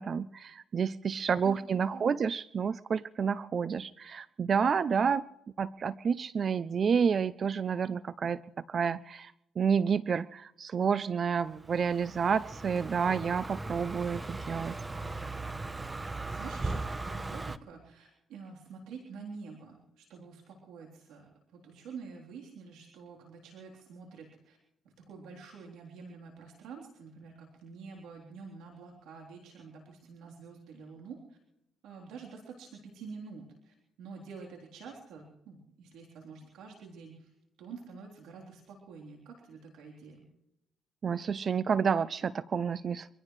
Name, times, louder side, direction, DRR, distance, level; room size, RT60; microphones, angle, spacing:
voice 1, 0.0-5.3 5.6-8.4 8.7-14.7 41.0-43.1, right 6 dB, 50° right, 17 dB, 0.5 m, -29 dB
voice 2, 1.4-2.2 16.0-24.6 24.8-31.4 31.8-37.3 37.6-40.3, right 5 dB, 90° right, -1 dB, 3.6 m, -48 dB
Car passing by, 11.5-17.6, right 2 dB, 20° right, 0.8 m, -38 dB
25.0 x 17.0 x 3.2 m, 0.81 s
cardioid pair, 90°, 0 cm